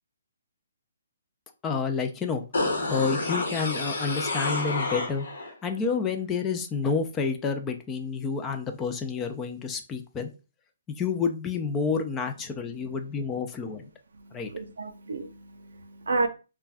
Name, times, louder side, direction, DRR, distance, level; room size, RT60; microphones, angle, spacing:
voice 1, 1.6-2.4 2.9-5.3 5.6-10.3 11.0-13.9 14.3-14.5, left 5 dB, 15° left, 0.3 m, -29 dB
sound 1, 2.5-5.5 5.9-6.0, left 2 dB, 75° left, 1.0 m, -29 dB
voice 2, 12.7-13.1 14.1-16.3, right 3 dB, 80° right, 0.5 m, -32 dB
2.4 x 2.2 x 3.3 m
hypercardioid pair, 160°, 0 cm